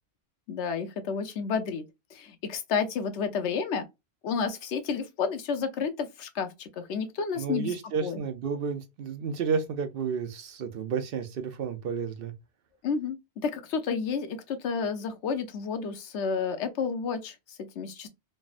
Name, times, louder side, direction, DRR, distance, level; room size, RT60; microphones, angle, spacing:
voice 1, 0.5-1.9 2.1-3.8 4.2-7.7 8.0-8.2 12.8-18.1, left 6 dB, 90° left, 1.0 m, -31 dB
voice 2, 7.3-12.3, right 6 dB, 65° right, 0.7 m, -31 dB
3.2 x 2.1 x 2.3 m
omnidirectional pair, 1.1 m